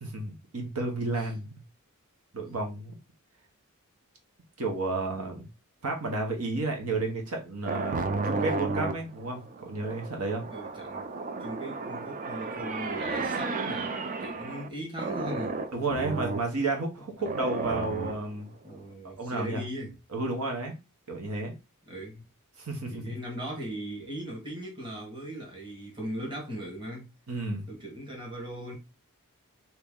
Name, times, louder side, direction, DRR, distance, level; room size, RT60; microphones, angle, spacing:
voice 1, 0.0-1.5 2.3-2.9 4.6-5.5 5.8-10.5 15.7-18.4 19.0-19.6 20.1-20.7 21.1-21.5 22.6-23.2 27.3-27.7, right 2 dB, 75° right, 0.9 m, -32 dB
sound 1, 7.7-14.7 15.0-16.5 17.3-18.4, right 3 dB, 35° right, 0.4 m, -33 dB
voice 2, 10.5-11.1 11.4-15.5 17.2-17.3 18.6-20.0 21.9-22.2 22.9-27.1 27.7-28.7, right 1 dB, 20° right, 1.2 m, -39 dB
3.0 x 2.7 x 3.6 m
head